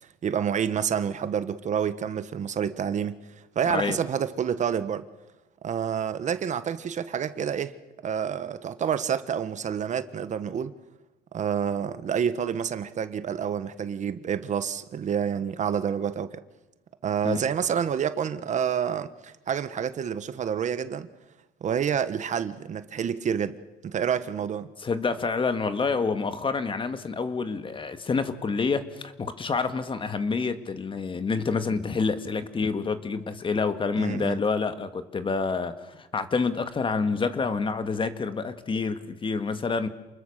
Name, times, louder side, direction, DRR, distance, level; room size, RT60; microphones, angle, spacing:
voice 1, 0.2-3.2 3.5-5.1 5.6-7.7 8.0-10.7 11.3-16.4 17.0-21.1 21.6-23.6 23.8-24.7 34.0-34.4, right 8 dB, 45° right, 1.3 m, -28 dB
voice 2, 3.7-4.0 17.2-17.4 24.8-39.9, left 4 dB, 30° left, 1.8 m, -28 dB
28.5 x 21.0 x 6.7 m
cardioid pair, 110°, 17 cm